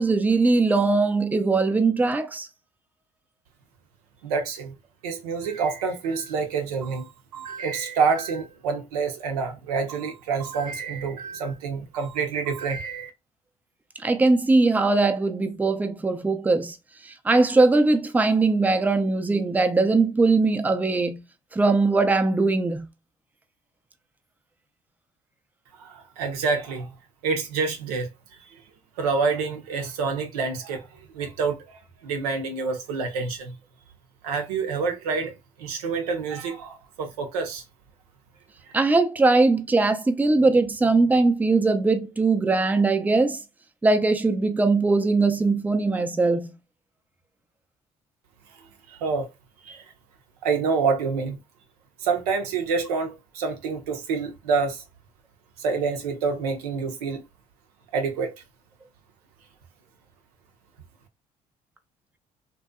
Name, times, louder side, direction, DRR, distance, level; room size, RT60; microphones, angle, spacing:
voice 1, 0.0-2.5 14.0-16.8 17.0-21.2 21.5-22.9 38.7-43.4 43.8-46.5, right 3 dB, 10° right, 0.4 m, -21 dB
voice 2, 4.2-4.7 5.0-13.1 25.8-26.9 27.2-28.1 29.0-30.9 31.1-31.6 32.0-33.5 34.2-35.3 35.6-37.6 48.9-49.3 49.6-49.8 50.4-51.4 52.0-54.8 55.6-57.2 57.9-58.3, right 5 dB, 85° right, 0.5 m, -27 dB
2.6 x 2.2 x 2.2 m
hypercardioid pair, 55°, 19 cm